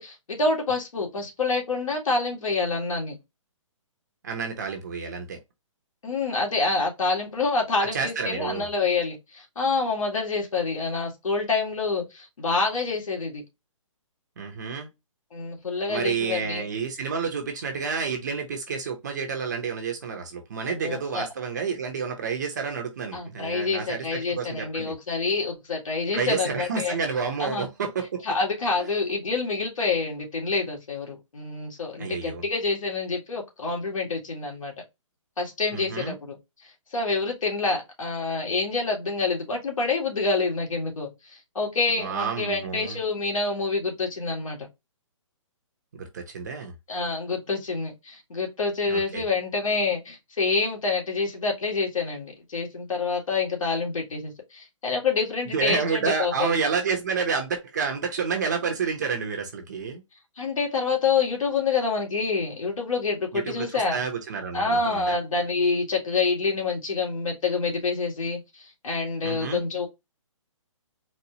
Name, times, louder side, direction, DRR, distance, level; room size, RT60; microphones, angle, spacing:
voice 1, 0.0-3.2 6.0-13.4 15.3-16.7 20.7-21.3 23.1-26.9 27.4-27.7 28.2-34.7 35.4-36.3 36.6-44.7 46.9-56.5 60.4-64.0 64.5-69.9, left 4 dB, 85° left, 1.8 m, -27 dB
voice 2, 4.2-5.4 7.9-8.7 14.4-14.9 15.9-24.9 26.1-28.2 32.0-32.4 35.7-36.2 42.0-43.0 45.9-46.7 48.9-49.2 55.5-60.0 63.3-65.1 69.2-69.6, right 5 dB, 35° right, 0.6 m, -29 dB
4.1 x 2.2 x 2.7 m
hypercardioid pair, 170°, 17 cm